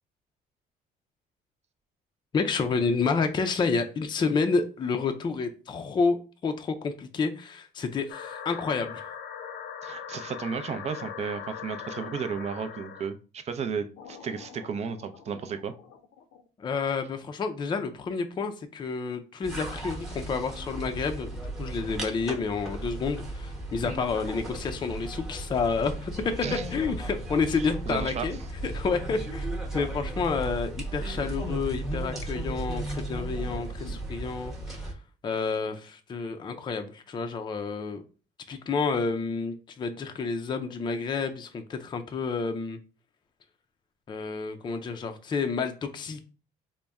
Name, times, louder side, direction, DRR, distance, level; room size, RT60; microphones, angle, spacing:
voice 1, 2.3-9.1 16.6-29.5 29.7-34.9 35.2-38.0 38.5-42.8 44.1-46.3, left 4 dB, 25° left, 6 dB, 0.4 m, -29 dB
sound 1, 8.1-13.1 14.0-16.4, left 8 dB, 85° left, 0.6 m, -41 dB
voice 2, 9.8-15.7 26.4-26.6 27.6-28.3, right 6 dB, 40° right, 9 dB, 0.5 m, -34 dB
sound 2, 19.4-34.9, right 1 dB, ahead, 0.9 m, -35 dB
4.0 x 2.1 x 3.4 m, 0.35 s
cardioid pair, 110°, 17 cm